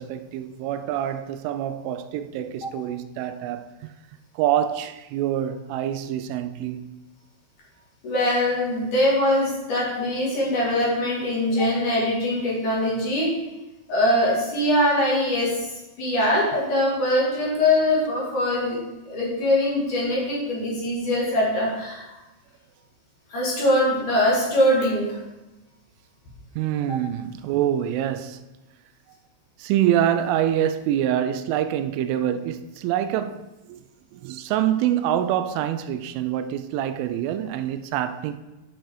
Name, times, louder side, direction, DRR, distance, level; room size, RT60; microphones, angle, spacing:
voice 1, 0.0-3.7 4.4-6.9 26.6-28.4 29.6-33.8 34.1-38.3, right 11 dB, 85° right, 3.1 m, -25 dB
voice 2, 8.0-13.3 13.9-15.7 16.0-18.8 19.1-22.0 23.3-25.2, left 1 dB, 50° left, 3.3 m, -22 dB
9.9 x 6.4 x 4.7 m
omnidirectional pair, 5.6 m